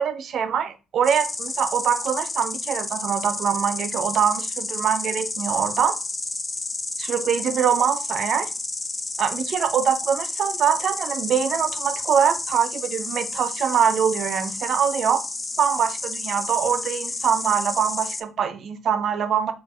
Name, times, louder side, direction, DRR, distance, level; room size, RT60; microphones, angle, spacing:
voice 1, 0.0-6.0 7.0-8.5 9.2-15.2 15.6-19.5, right 8 dB, 65° right, 0.5 m, -23 dB
Insect, 1.0-18.2, left 3 dB, 25° left, 0.4 m, -31 dB
4.2 x 2.4 x 3.6 m
cardioid pair, 90°, 0 cm